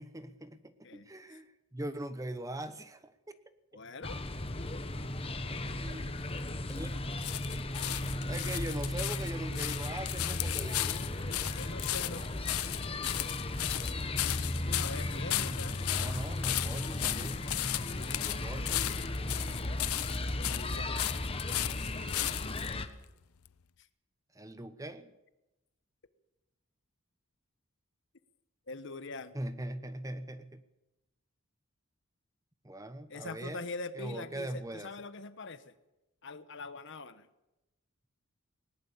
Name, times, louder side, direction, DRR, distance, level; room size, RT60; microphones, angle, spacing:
voice 1, 0.0-3.4 5.5-6.1 6.7-6.9 7.5-7.6 8.3-11.0 15.8-17.4 18.2-18.9 24.3-25.1 29.3-30.6 32.6-33.7 33.9-34.9, right 1 dB, 15° right, 11 dB, 0.9 m, -41 dB
voice 2, 0.8-1.4 3.7-4.2 11.5-12.3 14.6-15.8 20.3-21.0 28.7-29.3 33.1-35.7 36.2-37.3, left 3 dB, 55° left, 12 dB, 1.1 m, -43 dB
sound 1, 4.0-22.9, left 1 dB, 25° left, 1.1 m, -36 dB
sound 2, 6.2-22.7 23.4-23.5, left 15 dB, 85° left, 0.6 m, -36 dB
19.5 x 19.0 x 7.2 m, 0.99 s
head